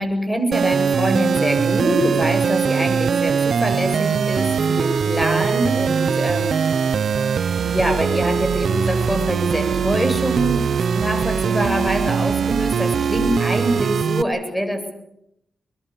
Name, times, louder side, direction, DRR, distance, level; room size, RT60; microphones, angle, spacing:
voice 1, 0.0-6.8 7.6-14.9, equal, 5° left, 7 dB, 7.9 m, -24 dB
sound 1, 0.5-14.2, right 6 dB, 70° right, 1.0 m, -21 dB
23.0 x 22.0 x 8.4 m, 0.79 s
cardioid pair, 60°, 0 cm